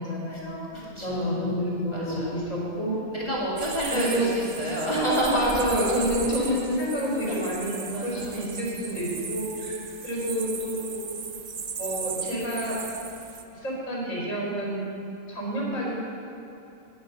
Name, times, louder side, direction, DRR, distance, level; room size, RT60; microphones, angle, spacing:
voice 1, 0.0-2.9 3.9-4.3 5.3-11.0 11.8-12.8 13.5-14.8 15.3-16.0, equal, 80° left, -7 dB, 3.8 m, -29 dB
voice 2, 0.7-1.5 1.9-2.4 3.1-5.5 7.2-7.4 7.9-8.5 8.8-9.3, right 1 dB, 20° left, -7 dB, 2.2 m, -29 dB
sound 1, 3.6-13.4, right 6 dB, 45° right, 0.5 m, -37 dB
10.5 x 9.7 x 5.4 m, 2.9 s
omnidirectional pair, 1.4 m